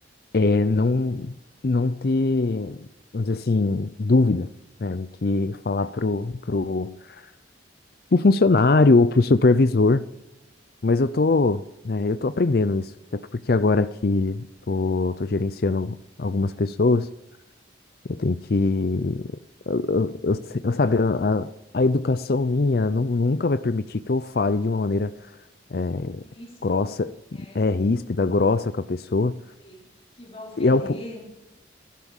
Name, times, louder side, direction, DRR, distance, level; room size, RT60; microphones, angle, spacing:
voice 1, 0.3-1.4 1.6-2.9 3.1-4.5 4.8-7.2 8.1-10.0 10.8-13.2 13.5-17.1 18.1-19.3 19.7-25.1 25.7-26.2 26.6-27.2 27.5-29.4 30.6-31.0, left 3 dB, 55° left, 0.5 m, -22 dB
voice 2, 26.2-26.8 27.3-27.6 29.6-29.9 30.2-31.3, equal, 30° left, 3.1 m, -41 dB
15.0 x 12.0 x 7.2 m
head